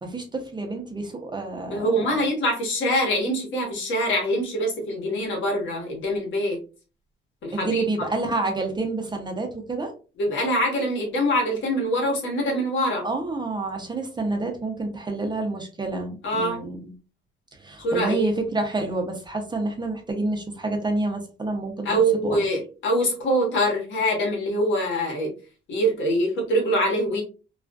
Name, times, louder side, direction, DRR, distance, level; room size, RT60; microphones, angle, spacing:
voice 1, 0.0-2.1 7.5-9.9 13.0-16.9 17.5-21.9 22.2-22.4, right 2 dB, 20° right, 4 dB, 0.6 m, -28 dB
voice 2, 1.7-6.6 7.4-8.1 10.2-13.0 16.2-16.6 17.8-18.3 21.8-25.3 25.7-27.2, equal, 70° left, 0 dB, 1.1 m, -24 dB
2.4 x 2.3 x 2.2 m, 0.34 s
cardioid pair, 90°, 20 cm